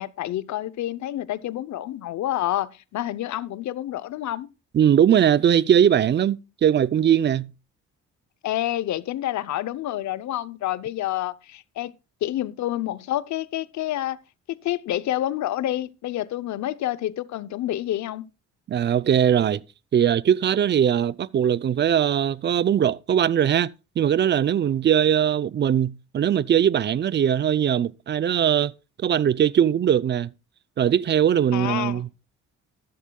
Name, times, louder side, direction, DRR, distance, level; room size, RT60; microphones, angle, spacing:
voice 1, 0.0-4.5 8.4-11.9 12.2-14.2 14.6-18.2 31.5-32.0, left 13 dB, 70° left, 0.7 m, -28 dB
voice 2, 4.7-7.5 18.7-19.6 19.9-28.7 29.0-30.3 30.8-32.1, right 9 dB, 35° right, 0.5 m, -20 dB
13.5 x 11.5 x 2.3 m
cardioid pair, 90°, 30 cm